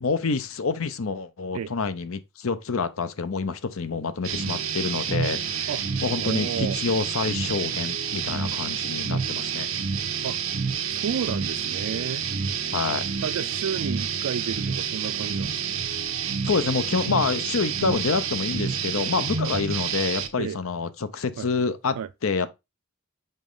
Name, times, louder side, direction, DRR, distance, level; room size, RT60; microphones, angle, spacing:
voice 1, 0.0-5.7 6.0-9.7 12.7-13.1 16.4-22.0 22.2-22.5, left 4 dB, 70° left, 0.7 m, -27 dB
sound 1, 4.2-20.3, right 7 dB, 65° right, 0.9 m, -29 dB
voice 2, 6.2-6.8 10.2-10.4 10.9-12.2 13.2-15.7 20.4-20.6 21.4-21.5 22.0-22.1, right 7 dB, 85° right, 0.4 m, -31 dB
5.3 x 4.9 x 3.8 m
head